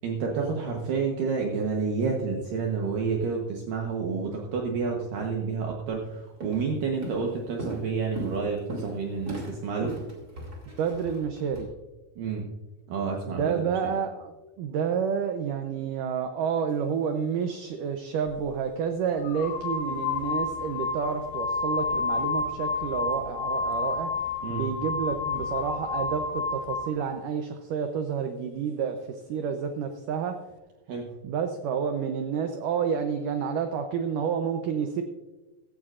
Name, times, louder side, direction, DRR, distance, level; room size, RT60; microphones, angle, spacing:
voice 1, 0.0-10.0 12.2-12.5 12.9-13.9 24.4-24.6 30.9-31.1, right 5 dB, 65° right, 0 dB, 2.5 m, -29 dB
Walk footsteps, 5.9-6.1 6.4-6.7 7.0-11.6, right 1 dB, 25° right, 2.5 m, -38 dB
voice 2, 10.7-11.7 13.3-24.1 24.5-30.4 31.2-35.0, right 7 dB, 90° right, 6 dB, 1.8 m, -29 dB
sound 1, 18.3-18.4 19.2-27.0, left 4 dB, 80° left, 2.0 m, -30 dB
16.0 x 14.0 x 2.5 m, 1.1 s
omnidirectional pair, 4.7 m